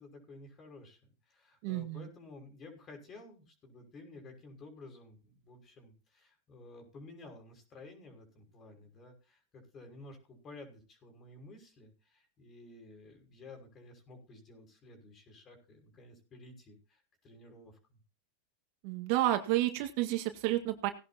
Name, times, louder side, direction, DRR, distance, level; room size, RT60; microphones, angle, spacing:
voice 1, 0.0-18.0, left 2 dB, 35° left, 4 dB, 6.0 m, -53 dB
voice 2, 1.6-2.1 18.8-20.9, right 15 dB, 60° right, 6 dB, 1.8 m, -30 dB
18.5 x 10.5 x 2.9 m, 0.33 s
hypercardioid pair, 110°, 0 cm